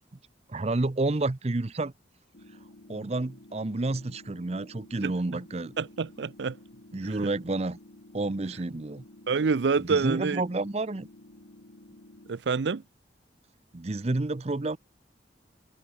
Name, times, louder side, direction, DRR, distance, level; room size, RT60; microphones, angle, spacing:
voice 1, 0.5-1.9 2.9-5.7 6.9-7.8 8.1-9.0 9.8-11.1 13.7-14.8, right 2 dB, 35° right, 0.7 m, -30 dB
sound 1, 2.3-12.4, left 1 dB, 75° left, 2.0 m, -52 dB
voice 2, 5.8-6.6 7.1-7.2 9.3-10.4 12.3-12.8, right 5 dB, 80° right, 0.5 m, -27 dB
head